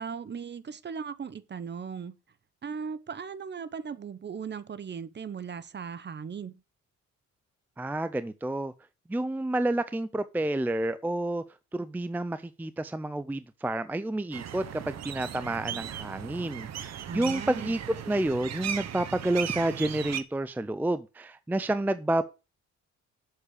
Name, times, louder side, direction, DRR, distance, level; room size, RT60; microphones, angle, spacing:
voice 1, 0.0-2.2 2.6-6.6 17.1-17.7, right 6 dB, 35° right, 0.9 m, -38 dB
voice 2, 7.8-8.7 9.1-11.4 11.7-17.8 18.1-22.2, right 1 dB, 5° right, 0.5 m, -29 dB
sound 1, 14.3-20.2, right 9 dB, 60° right, 1.0 m, -37 dB
7.4 x 6.5 x 6.6 m
cardioid pair, 90°, 30 cm